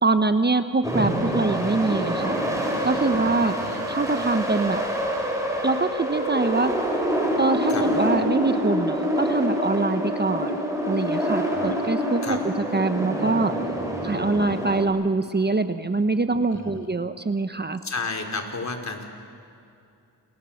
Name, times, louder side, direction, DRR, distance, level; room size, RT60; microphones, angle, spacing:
voice 1, 0.0-2.4 2.8-3.6 3.9-4.8 5.6-6.7 7.4-13.5 14.0-17.8, right 3 dB, 25° right, 10 dB, 1.1 m, -24 dB
sound 1, 0.8-14.9, equal, 10° right, 7.3 m, -26 dB
voice 2, 3.2-3.8 7.7-7.8 11.5-11.7 12.2-12.4 16.5-16.9 17.8-19.0, left 3 dB, 45° left, 3 dB, 4.4 m, -32 dB
29.0 x 28.0 x 7.3 m, 2.6 s
cardioid pair, 75°, 40 cm